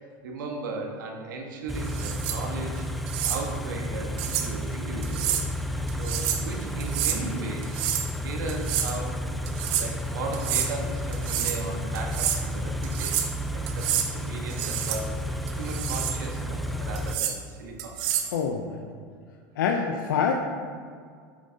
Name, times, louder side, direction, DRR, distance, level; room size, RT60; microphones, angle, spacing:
voice 1, 0.2-2.9 3.2-5.3 6.0-7.7 8.1-9.2 9.7-18.0, right 3 dB, 85° right, 1 dB, 1.3 m, -36 dB
Car / Idling, 1.7-17.2, equal, ahead, 0.5 m, -32 dB
sound 1, 1.9-2.4 3.1-3.4 4.2-4.5 5.0-5.5 5.9-6.5 6.8-7.2 7.6-8.1 8.5-9.0 9.5-9.9 10.3-10.7 11.1-11.6 11.9-12.4 12.8-13.3 13.7-14.1 14.5-15.0 15.5-16.2 17.0-17.4 17.8-18.3, right 10 dB, 60° right, 0.9 m, -29 dB
voice 2, 18.3-18.8 19.6-20.3, left 6 dB, 90° left, 3 dB, 0.6 m, -26 dB
8.5 x 7.4 x 2.8 m, 2.1 s
supercardioid pair, 115°, 10 cm